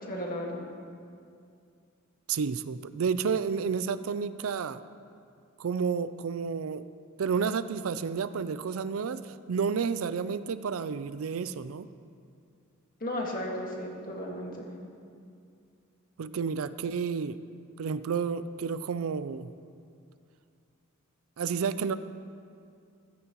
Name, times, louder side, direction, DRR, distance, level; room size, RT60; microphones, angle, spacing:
voice 1, 0.1-0.6 13.0-14.7, left 1 dB, 45° left, -1 dB, 1.8 m, -34 dB
voice 2, 2.3-4.8 5.6-6.9 7.2-11.9 16.2-17.4 17.8-19.5 21.4-22.0, right 6 dB, 85° right, 13 dB, 0.4 m, -31 dB
14.5 x 13.5 x 3.0 m, 2.3 s
head